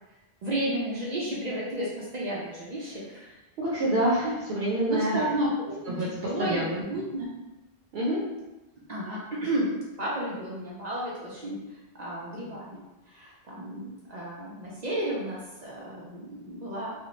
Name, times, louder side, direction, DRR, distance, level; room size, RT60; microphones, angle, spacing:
voice 1, 0.4-3.4 4.2-4.3 4.9-7.3 8.9-9.7 10.0-11.6 12.0-12.8 13.1-16.9, right 1 dB, 55° right, -6 dB, 0.5 m, -32 dB
voice 2, 3.6-5.2 5.9-6.1 6.4-6.9 7.9-8.2, right 1 dB, 80° right, -6 dB, 0.8 m, -27 dB
2.6 x 2.1 x 2.9 m, 1.0 s
omnidirectional pair, 1.0 m